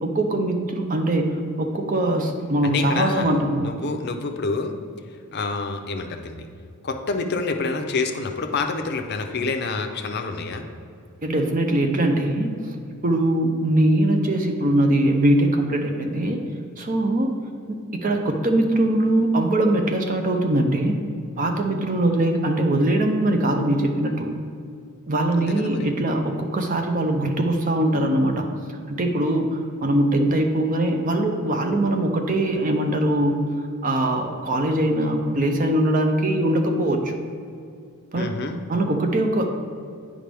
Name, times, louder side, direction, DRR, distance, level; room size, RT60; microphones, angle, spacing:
voice 1, 0.0-3.7 11.2-12.8 13.0-16.4 16.8-17.3 17.7-21.0 21.4-24.3 25.1-33.4 33.8-37.2 38.1-38.3 38.7-39.5, right 1 dB, 35° right, 4 dB, 0.6 m, -22 dB
voice 2, 2.6-4.7 5.3-6.5 6.8-10.7 25.4-25.9 38.1-38.6, left 4 dB, 45° left, 5 dB, 0.5 m, -28 dB
8.9 x 5.0 x 3.4 m, 2.3 s
head